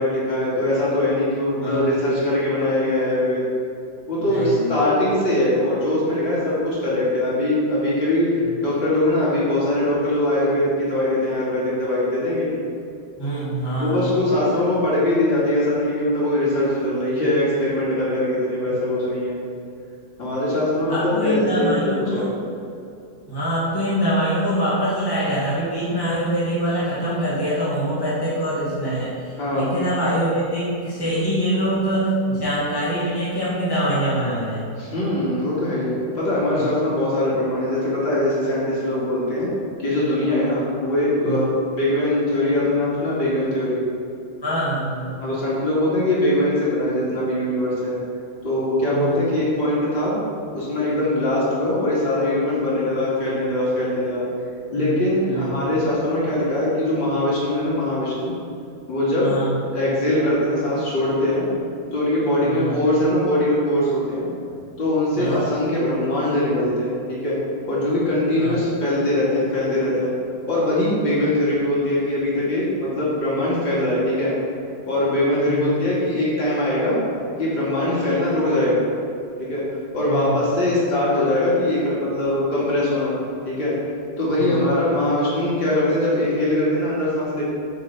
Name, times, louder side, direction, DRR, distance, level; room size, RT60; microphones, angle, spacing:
voice 1, 0.0-3.5 4.1-12.6 13.8-19.4 20.2-22.3 29.4-29.7 34.8-39.5 39.8-41.5 41.8-43.8 45.2-48.0 48.4-50.2 50.5-54.3 54.7-58.3 58.9-59.3 59.7-61.5 61.9-64.3 64.8-67.4 67.7-70.1 70.5-74.3 74.9-77.0 77.4-78.8 79.4-79.7 79.9-83.1 83.5-83.7 84.2-87.4, left 1 dB, 85° left, -8 dB, 3.5 m, -21 dB
voice 2, 4.3-4.7 13.2-14.1 20.9-22.3 23.3-29.1 29.5-34.6 36.5-36.7 41.2-41.4 44.4-45.1 48.9-49.1 54.7-55.0 55.2-55.5 59.2-59.5 62.4-62.7 65.2-65.5 68.4-68.6 75.5-75.7 80.1-80.4 84.4-84.7, right 1 dB, 10° left, -9 dB, 2.3 m, -24 dB
8.8 x 6.5 x 5.7 m, 2.5 s
omnidirectional pair, 2.0 m